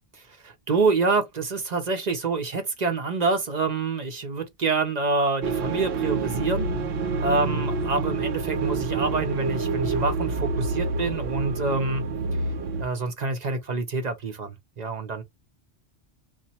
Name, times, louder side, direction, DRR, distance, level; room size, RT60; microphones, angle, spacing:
voice 1, 0.1-6.7 7.2-12.0 12.3-12.4 12.8-15.2, right 3 dB, 45° right, 0.7 m, -27 dB
sound 1, 5.4-12.9, right 4 dB, 65° right, 0.8 m, -27 dB
2.9 x 2.3 x 4.1 m
omnidirectional pair, 1.2 m